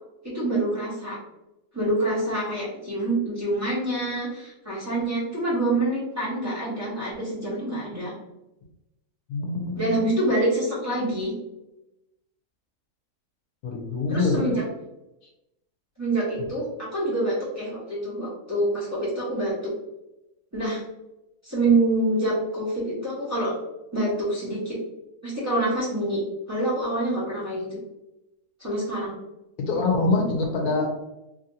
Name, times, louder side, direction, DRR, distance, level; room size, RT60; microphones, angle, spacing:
voice 1, 0.2-1.2 1.7-8.1 9.8-11.3 14.1-14.7 16.0-19.7 20.5-20.8 21.4-23.5 23.9-24.8 25.2-26.2 26.5-27.8 28.6-29.2, right 2 dB, 10° right, -9 dB, 1.1 m, -26 dB
voice 2, 9.3-10.1 13.6-14.6 29.6-30.9, left 3 dB, 75° left, 1 dB, 1.1 m, -25 dB
3.3 x 2.6 x 2.7 m, 0.92 s
omnidirectional pair, 1.7 m